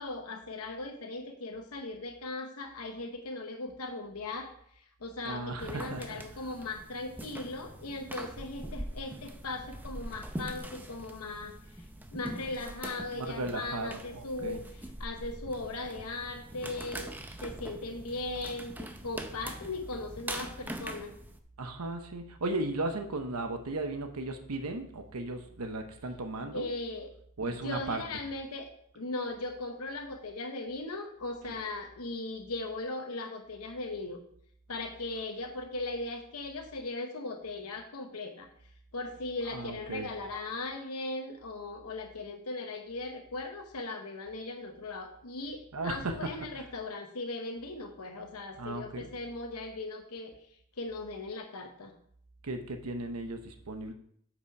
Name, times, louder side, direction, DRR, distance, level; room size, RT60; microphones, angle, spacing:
voice 1, 0.0-14.6 15.0-17.2 17.4-21.1 26.5-27.1 27.6-28.7 28.9-34.2 34.7-38.5 38.9-50.3 50.8-51.9, left 2 dB, 80° left, 4 dB, 0.9 m, -38 dB
voice 2, 5.2-6.2 13.1-14.6 21.6-26.7 27.4-28.0 31.4-31.5 39.5-40.1 45.7-46.7 48.6-49.2 52.4-53.9, right 2 dB, 85° right, 6 dB, 0.8 m, -36 dB
sound 1, 5.6-21.4, right 1 dB, 10° right, 0.5 m, -43 dB
8.3 x 5.2 x 4.6 m, 0.66 s
head